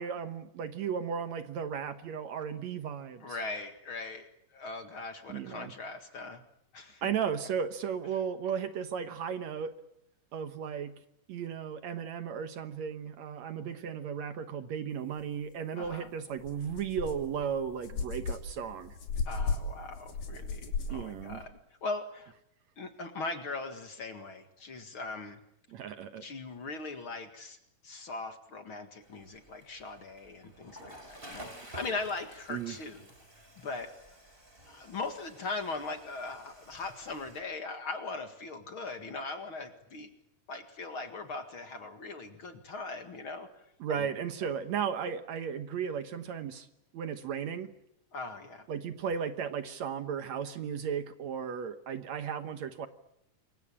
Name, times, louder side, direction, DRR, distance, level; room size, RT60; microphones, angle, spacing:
voice 1, 0.0-3.4 5.3-5.7 7.0-9.8 10.3-11.0 11.3-19.0 20.9-21.4 25.7-26.3 32.5-32.8 43.8-46.7 46.9-47.7 48.7-52.9, right 7 dB, 65° right, 10 dB, 2.2 m, -35 dB
voice 2, 3.2-6.4 6.7-7.1 15.8-16.1 19.3-22.3 22.8-25.4 26.2-27.6 27.8-33.1 33.4-33.9 34.7-40.1 40.5-43.5 44.0-44.1 48.1-48.7, left 3 dB, 45° left, 7 dB, 2.3 m, -40 dB
sound 1, 15.8-15.9 16.4-21.4, left 4 dB, 90° left, 4.5 m, -36 dB
Water / Toilet flush, 29.0-37.4, right 1 dB, 15° right, 5.1 m, -51 dB
27.0 x 23.5 x 8.7 m, 0.79 s
omnidirectional pair, 3.7 m